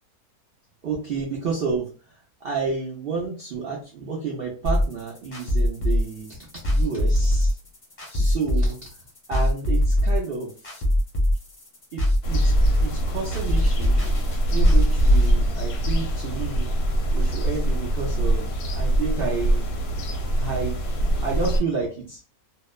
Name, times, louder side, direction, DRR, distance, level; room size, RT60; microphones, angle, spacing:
voice 1, 0.8-1.9 2.4-6.3 6.5-7.5 8.1-8.9 9.3-10.8 11.9-14.0 14.5-16.7 17.1-19.7 20.4-20.8 21.2-22.2, right 4 dB, 80° right, -2 dB, 0.5 m, -30 dB
sound 1, 4.6-15.3, left 1 dB, 40° left, 0.7 m, -22 dB
sound 2, 12.2-21.6, right 1 dB, 75° left, 1.1 m, -23 dB
2.8 x 2.0 x 2.2 m, 0.36 s
omnidirectional pair, 1.6 m